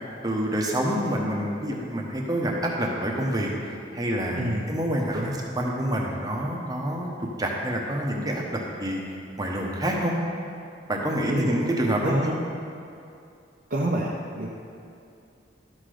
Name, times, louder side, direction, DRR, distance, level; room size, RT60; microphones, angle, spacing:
voice 1, 0.2-3.5 3.9-7.1 7.4-9.0 9.4-10.1 10.9-12.4, equal, 20° right, -1 dB, 1.1 m, -27 dB
voice 2, 4.4-4.7 5.1-5.4 11.3-11.5 12.0-12.3 13.7-14.5, right 1 dB, 45° right, -4 dB, 0.7 m, -27 dB
12.5 x 6.0 x 5.0 m, 2.5 s
head